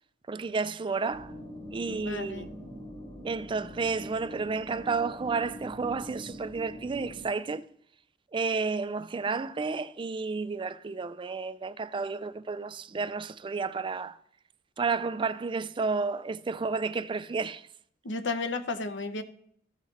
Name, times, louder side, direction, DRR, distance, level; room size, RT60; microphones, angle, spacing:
voice 1, 0.3-1.3 1.7-2.5 3.2-7.6 8.3-14.2 14.8-17.6, right 4 dB, 25° right, 0.4 m, -31 dB
sound 1, 1.1-7.2, equal, 35° left, 3.4 m, -43 dB
voice 2, 1.9-2.5 18.0-19.2, left 3 dB, 70° left, 0.9 m, -33 dB
14.5 x 5.7 x 4.1 m
head